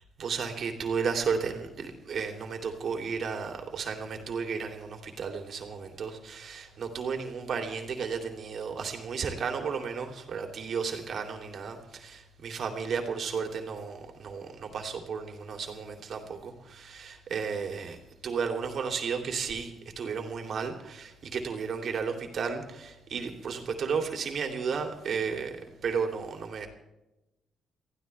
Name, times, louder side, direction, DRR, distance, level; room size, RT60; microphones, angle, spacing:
voice 1, 0.2-18.0 18.2-26.7, right 5 dB, 55° right, 4 dB, 3.0 m, -33 dB
23.5 x 15.0 x 3.4 m, 0.97 s
cardioid pair, 90°, 0 cm